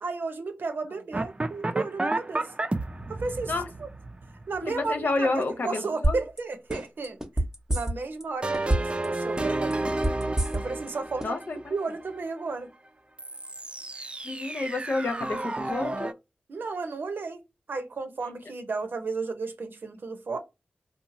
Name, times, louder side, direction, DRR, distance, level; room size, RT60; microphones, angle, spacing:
voice 1, 0.0-2.5 3.1-3.5 3.8-3.9 4.5-7.2 7.7-9.9 10.5-11.4 11.7-12.7 16.5-20.4, right 4 dB, 75° right, 0.7 m, -33 dB
sound 1, 1.1-5.2 8.4-12.2 13.2-16.1, right 2 dB, 30° right, 0.4 m, -32 dB
voice 2, 4.6-6.2 11.2-11.7 14.0-16.1, left 3 dB, 65° left, 0.5 m, -30 dB
sound 2, 6.0-6.4 6.7-8.2 8.5-9.1 9.4-10.9 11.2-11.3, right 1 dB, 15° right, 0.8 m, -26 dB
2.8 x 2.3 x 2.5 m
cardioid pair, 40°, 3 cm